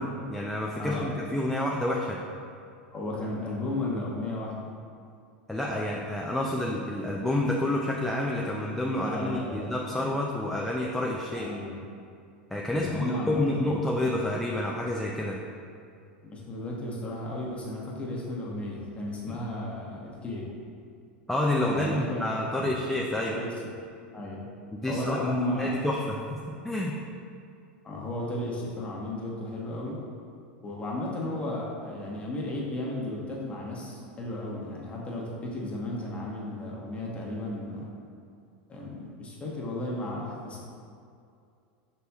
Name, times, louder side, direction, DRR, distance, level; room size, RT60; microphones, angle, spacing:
voice 1, 0.0-2.2 5.5-11.5 12.5-15.4 19.3-19.4 21.3-23.4 24.7-26.3 26.6-27.0, left 1 dB, 5° left, -3 dB, 0.4 m, -29 dB
voice 2, 2.9-4.7 9.0-9.7 11.3-11.8 12.7-13.7 16.2-20.5 21.7-22.3 22.6-22.7 23.1-23.7 24.1-24.4 24.9-25.8 27.8-30.0 30.6-37.8 38.7-40.6, left 1 dB, 20° left, -4 dB, 1.0 m, -34 dB
5.3 x 4.1 x 2.3 m, 2.4 s
hypercardioid pair, 100°, 6 cm